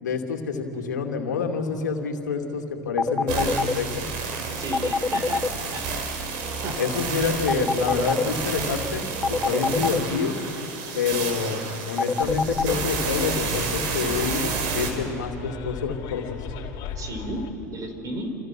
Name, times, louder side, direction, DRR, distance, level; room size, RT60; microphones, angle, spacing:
voice 1, 0.0-4.0 6.8-10.3 10.9-16.4, left 5 dB, 85° left, 3 dB, 2.5 m, -27 dB
sound 1, 3.0-3.7 4.7-5.5 7.5-8.2 9.2-10.0 12.0-12.7, left 4 dB, 10° left, 0.5 m, -23 dB
sound 2, 3.3-14.9, right 4 dB, 60° right, 4.9 m, -30 dB
voice 2, 4.5-5.9 6.6-6.8 16.9-17.4 17.7-18.3, right 1 dB, 40° right, 5 dB, 5.0 m, -33 dB
Bus, 12.2-17.5, left 8 dB, 50° left, 2.7 m, -37 dB
29.0 x 28.0 x 6.1 m, 3.0 s
hypercardioid pair, 90°, 9 cm